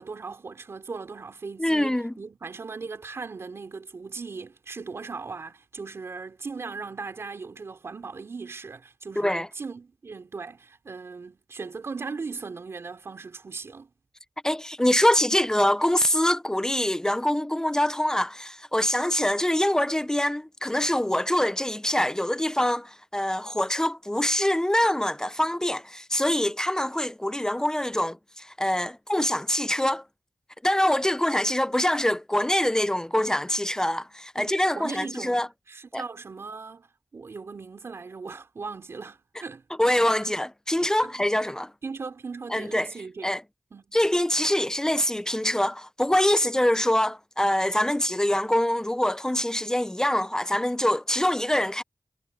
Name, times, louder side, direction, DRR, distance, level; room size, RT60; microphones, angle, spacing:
voice 1, 0.0-13.9 34.4-39.6 41.0-41.2 41.8-43.3 43.7-44.0, right 4 dB, 70° right, 3.6 m, -38 dB
voice 2, 1.6-2.1 9.2-9.5 14.4-30.0 30.6-35.5 35.9-36.0 39.8-41.7 42.5-42.9 43.2-43.4 43.9-51.8, left 1 dB, 15° left, 0.7 m, -24 dB
cardioid pair, 45°, 5 cm